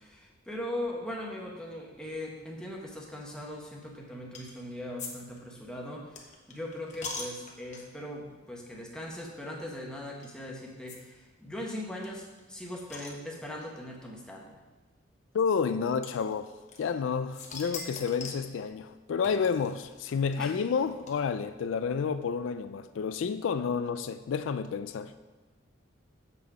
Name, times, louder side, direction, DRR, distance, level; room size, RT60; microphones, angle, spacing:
voice 1, 0.0-14.6 20.4-20.5, left 1 dB, 5° left, 1.0 m, -40 dB
sound 1, 4.3-4.6 5.0-5.1 5.4-8.1 8.7-8.9 9.1-9.2 10.2-10.4 10.9-11.0 11.3-11.4 11.5-11.6 12.0-13.7 14.6-14.7 16.0-17.0 17.3-18.5 19.2-21.5, left 4 dB, 35° left, 1.0 m, -43 dB
voice 2, 15.3-16.5 16.8-25.1, left 6 dB, 80° left, 0.3 m, -30 dB
7.3 x 5.7 x 4.8 m
head